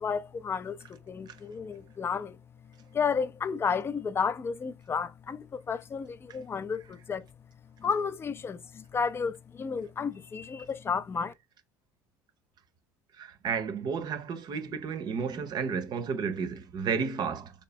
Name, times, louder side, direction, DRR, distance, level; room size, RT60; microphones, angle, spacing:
voice 1, 0.0-2.4 2.9-7.2 7.8-11.3, left 6 dB, 25° left, 0.4 m, -32 dB
voice 2, 13.2-17.5, right 6 dB, 45° right, 0.7 m, -32 dB
3.2 x 2.8 x 3.2 m
hypercardioid pair, 75°, 10 cm